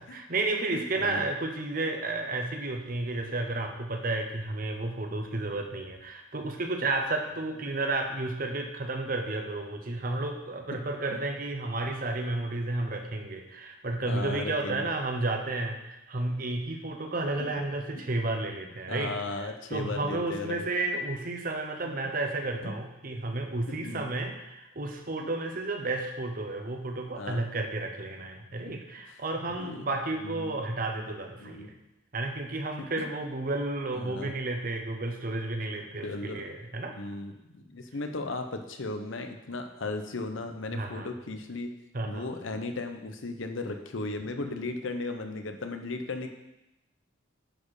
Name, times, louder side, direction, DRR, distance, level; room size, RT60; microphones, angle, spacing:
voice 1, 0.0-31.7 32.1-37.0 40.7-41.1 41.9-42.3, right 2 dB, 45° right, 4 dB, 0.9 m, -32 dB
voice 2, 0.7-1.2 14.0-14.9 17.4-17.5 18.9-20.6 22.6-22.7 23.7-24.1 25.2-25.3 27.2-27.5 28.7-28.8 29.1-29.2 29.6-29.8 30.2-30.5 31.4-31.7 32.8-32.9 33.9-34.3 36.0-36.6 36.9-41.7 42.0-46.3, left 2 dB, 80° left, 6 dB, 0.8 m, -36 dB
10.0 x 4.4 x 4.9 m, 0.92 s
head